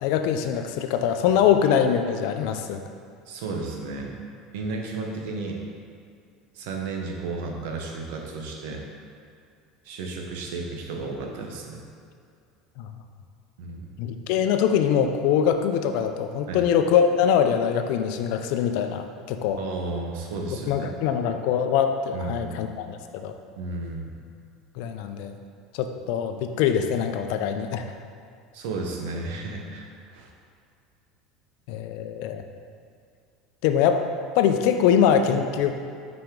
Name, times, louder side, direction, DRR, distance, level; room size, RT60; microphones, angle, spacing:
voice 1, 0.0-2.8 12.8-12.9 14.0-19.6 20.7-23.3 24.8-25.3 25.7-27.8 31.7-32.4 33.6-34.0 34.4-35.7, left 8 dB, 70° left, 7 dB, 0.5 m, -23 dB
voice 2, 3.3-4.2 4.5-5.6 6.5-8.8 9.8-11.8 13.6-13.9 16.5-16.7 19.6-20.9 22.1-22.5 23.6-24.1 28.5-29.9 30.1-30.3, right 3 dB, 80° right, 1 dB, 0.9 m, -33 dB
5.7 x 5.1 x 3.7 m, 2.4 s
supercardioid pair, 115°, 0 cm